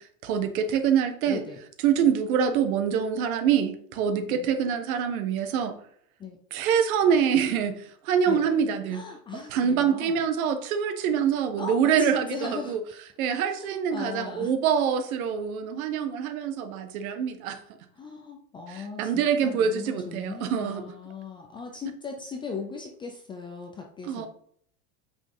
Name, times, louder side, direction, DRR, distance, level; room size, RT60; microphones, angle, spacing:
voice 1, 0.2-1.4 1.8-5.7 6.5-7.8 8.0-9.0 9.5-12.8 13.2-17.6 19.0-20.8 24.1-24.3, right 7 dB, 75° right, 8 dB, 1.4 m, -25 dB
voice 2, 1.3-1.6 4.3-4.5 6.2-6.4 8.3-8.5 8.9-10.2 11.6-12.8 13.6-14.5 17.9-24.3, left 5 dB, 15° left, 3 dB, 0.3 m, -38 dB
8.3 x 6.1 x 3.7 m, 0.63 s
supercardioid pair, 160°, 43 cm